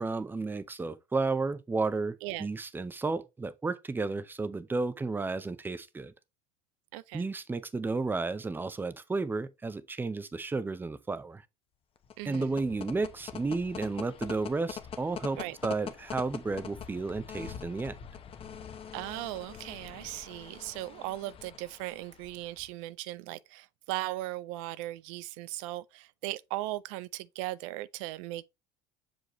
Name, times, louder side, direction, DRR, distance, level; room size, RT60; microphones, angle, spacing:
voice 1, 0.0-6.1 7.1-11.4 12.3-17.9, right 3 dB, 10° right, 0.6 m, -32 dB
voice 2, 6.9-7.3 12.2-12.6 15.4-15.6 18.9-28.4, right 17 dB, 80° right, 0.4 m, -38 dB
sound 1, 12.0-22.7, left 8 dB, 35° left, 0.9 m, -44 dB
6.3 x 5.0 x 3.0 m
supercardioid pair, 105°, 16 cm